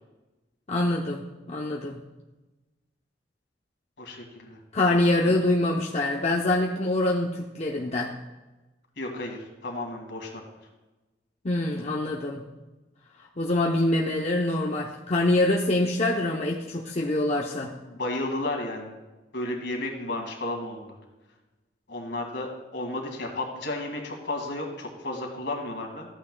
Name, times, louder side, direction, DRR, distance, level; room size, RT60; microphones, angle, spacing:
voice 1, 0.7-2.0 4.7-8.1 11.4-12.4 13.4-17.7, left 2 dB, 35° left, -2 dB, 0.7 m, -25 dB
voice 2, 4.0-4.6 5.2-5.3 9.0-10.4 17.8-18.9 19.3-21.0 21.9-26.1, left 2 dB, 65° left, 2 dB, 1.9 m, -33 dB
14.0 x 9.0 x 2.2 m, 1.1 s
head